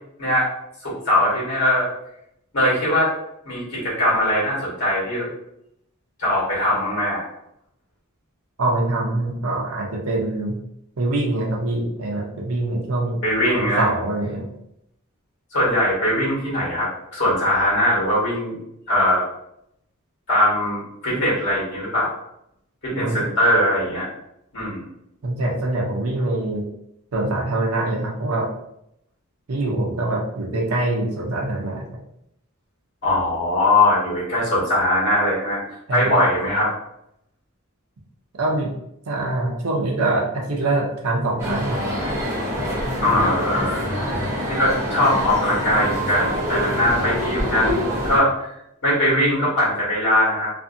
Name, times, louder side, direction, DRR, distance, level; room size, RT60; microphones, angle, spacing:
voice 1, 0.8-1.9 2.5-3.1 3.4-5.3 6.2-7.3 13.2-13.9 15.5-18.6 18.9-19.2 20.3-22.1 22.8-24.1 24.5-24.8 33.0-35.6 35.9-36.7 43.0-43.9 44.5-47.8 48.0-48.3 48.8-50.5, left 1 dB, 55° left, -6 dB, 1.4 m, -20 dB
voice 2, 8.6-10.6 11.0-13.2 13.5-14.4 23.0-23.3 25.2-26.7 27.1-28.5 29.5-31.9 35.9-36.1 38.4-38.7 39.1-41.8, right 2 dB, 75° right, 0 dB, 0.6 m, -24 dB
sound 1, 41.4-48.2, equal, 10° right, 0.7 m, -25 dB
2.5 x 2.5 x 2.6 m, 0.79 s
head